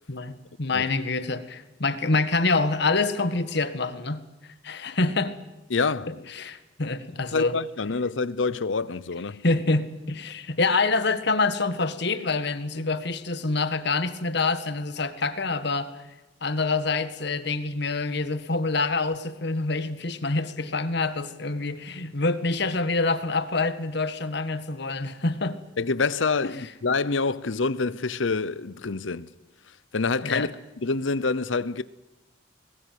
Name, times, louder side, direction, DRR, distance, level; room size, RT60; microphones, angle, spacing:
voice 1, 0.1-4.2 4.6-5.4 6.1-7.6 9.4-15.9 16.4-25.6 26.4-26.5 30.2-30.5, left 3 dB, 60° left, 1.7 m, -26 dB
voice 2, 5.7-6.2 7.3-9.4 25.8-29.3 29.9-30.5 30.8-31.8, left 4 dB, 80° left, 0.8 m, -26 dB
22.0 x 19.5 x 9.4 m
head